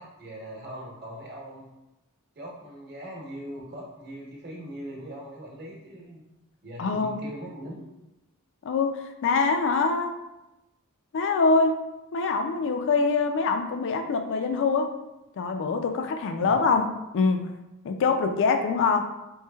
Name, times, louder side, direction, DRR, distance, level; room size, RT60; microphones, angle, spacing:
voice 1, 0.0-1.7 2.3-6.2 6.6-7.9 16.4-16.6, equal, 45° right, -3 dB, 1.0 m, -40 dB
voice 2, 6.8-7.2 8.6-10.1 11.1-11.7 12.1-14.9 15.4-16.9 17.1-17.4 17.8-19.0, left 4 dB, 55° left, 6 dB, 0.4 m, -24 dB
4.0 x 3.1 x 2.3 m, 0.97 s
head